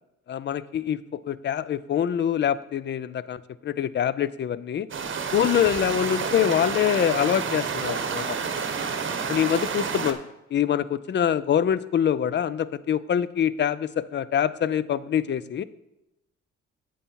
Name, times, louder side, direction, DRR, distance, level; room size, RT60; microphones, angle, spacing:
voice 1, 0.3-4.9 5.3-8.4 9.3-10.2 10.5-15.6, left 9 dB, 40° left, 17 dB, 0.4 m, -25 dB
sound 1, 4.9-10.1, right 6 dB, 40° right, 1.1 m, -29 dB
8.8 x 7.0 x 4.6 m, 0.90 s
cardioid pair, 90°, 30 cm